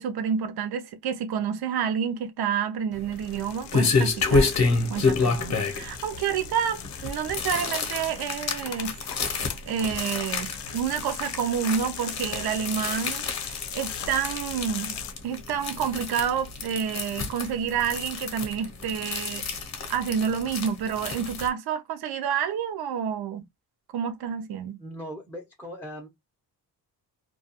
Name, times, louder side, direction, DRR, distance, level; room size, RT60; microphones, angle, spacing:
voice 1, 0.0-4.5 4.9-8.9 9.7-15.0 15.2-19.4 19.9-23.4 23.9-24.8, right 8 dB, 60° right, 0.6 m, -29 dB
sound 1, 2.9-21.5, left 4 dB, 40° left, 0.7 m, -29 dB
sound 2, 3.1-15.1, left 9 dB, 75° left, 0.6 m, -40 dB
voice 2, 24.8-26.1, equal, 5° left, 0.5 m, -39 dB
2.3 x 2.3 x 2.6 m
wide cardioid pair, 145°, 42 cm